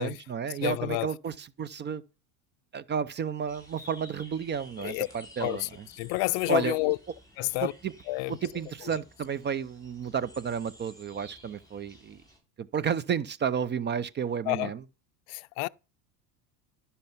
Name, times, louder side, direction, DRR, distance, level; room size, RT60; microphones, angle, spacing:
voice 1, 0.0-2.0 2.7-5.9 6.5-6.7 7.6-7.9 8.4-12.2 12.6-14.8, right 7 dB, 25° right, 0.5 m, -32 dB
voice 2, 0.6-1.1 4.8-5.1 5.4-7.0 7.4-7.7 8.1-8.4 14.5-14.7 15.3-15.7, left 22 dB, 55° left, 0.5 m, -29 dB
sound 1, 3.5-12.4, left 1 dB, 5° left, 5.9 m, -53 dB
12.0 x 5.6 x 5.6 m
supercardioid pair, 105°, 48 cm